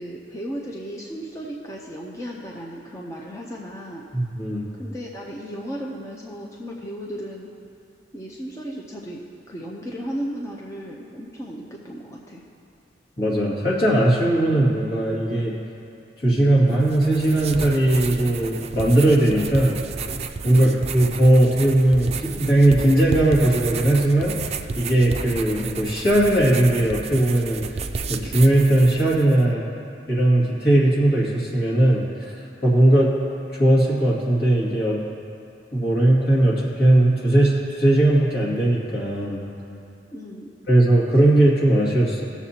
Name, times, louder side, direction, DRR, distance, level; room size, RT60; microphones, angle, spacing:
voice 1, 0.0-4.1 4.8-7.5 8.1-9.2 9.5-12.4 20.5-20.7 40.1-40.5, equal, 15° left, -3 dB, 0.7 m, -35 dB
voice 2, 4.1-4.7 13.2-15.5 16.2-19.8 20.4-24.3 24.8-27.6 28.1-29.6 30.1-32.3 32.6-33.1 33.5-35.0 35.7-39.4 40.7-42.2, right 1 dB, 60° left, -5 dB, 2.3 m, -18 dB
sound 1, 16.7-29.4, right 4 dB, 35° right, 0.4 m, -32 dB
19.0 x 7.1 x 2.9 m, 2.5 s
head